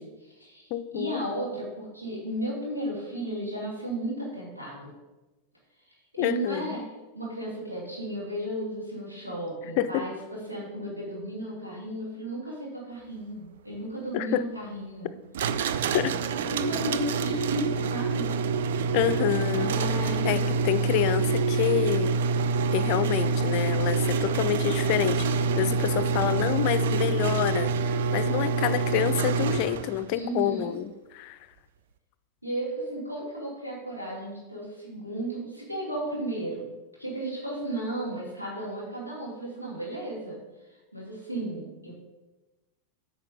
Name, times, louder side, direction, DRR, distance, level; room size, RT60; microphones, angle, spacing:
voice 1, 0.0-4.9 6.1-6.9 7.1-15.1 16.3-18.3 19.6-20.4 30.1-30.7 32.4-36.7 37.0-40.4 40.7-41.9, right 1 dB, 85° right, -5 dB, 2.4 m, -34 dB
voice 2, 0.7-1.2 6.2-6.8 9.8-10.1 14.1-14.4 15.9-16.1 18.9-19.8 20.2-22.2 22.7-31.4, left 12 dB, 45° left, 15 dB, 0.4 m, -28 dB
sound 1, 15.3-30.0, right 4 dB, 55° right, 0.4 m, -26 dB
9.0 x 5.0 x 5.1 m, 1.1 s
figure-of-eight pair, 90°, 0 cm